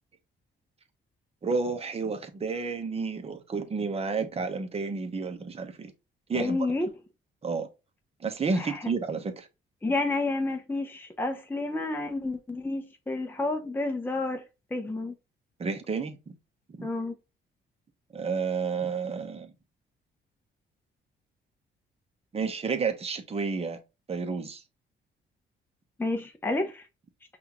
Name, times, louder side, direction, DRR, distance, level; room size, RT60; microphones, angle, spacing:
voice 1, 1.4-5.9 6.3-6.6 7.4-7.7 8.2-9.5 15.6-16.3 16.7-16.9 18.1-19.5 22.3-23.8 24.1-24.6, right 4 dB, 30° right, 0.8 m, -31 dB
voice 2, 6.3-6.9 8.5-8.8 9.8-14.4 14.7-15.1 16.8-17.1 26.0-26.8, left 2 dB, 10° left, 0.6 m, -30 dB
5.5 x 2.5 x 2.8 m
cardioid pair, 90°, 20 cm